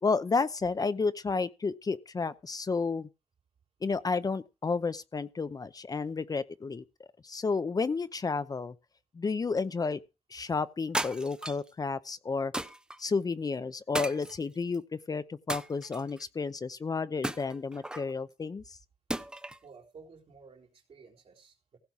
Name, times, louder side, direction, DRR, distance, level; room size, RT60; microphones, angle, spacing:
voice 1, 0.0-3.1 3.8-8.7 9.1-10.0 10.3-12.5 13.0-18.8, left 4 dB, 35° left, 0.7 m, -31 dB
sound 1, 10.9-11.7 12.5-13.0 13.9-14.8 15.5-16.2 17.2-18.1 19.1-19.7, right 1 dB, 10° right, 0.7 m, -35 dB
voice 2, 19.6-21.8, right 5 dB, 65° right, 3.8 m, -54 dB
16.0 x 5.3 x 6.1 m
cardioid pair, 75°, 11 cm